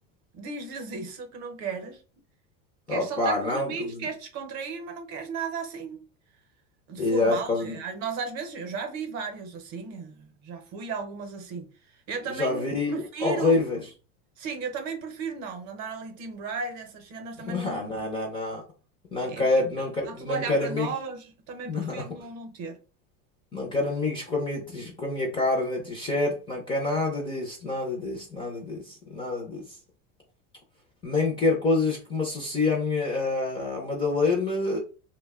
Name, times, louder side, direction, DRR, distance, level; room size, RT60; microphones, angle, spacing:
voice 1, 0.3-2.0 2.9-6.0 6.9-13.6 14.4-17.8 19.3-22.8, right 5 dB, 45° right, 0.7 m, -35 dB
voice 2, 2.9-4.1 7.0-7.8 12.4-13.8 17.5-18.6 19.1-20.9 21.7-22.0 23.5-29.8 31.0-34.8, left 3 dB, 15° left, 0.4 m, -27 dB
2.6 x 2.1 x 3.4 m
supercardioid pair, 150°, 38 cm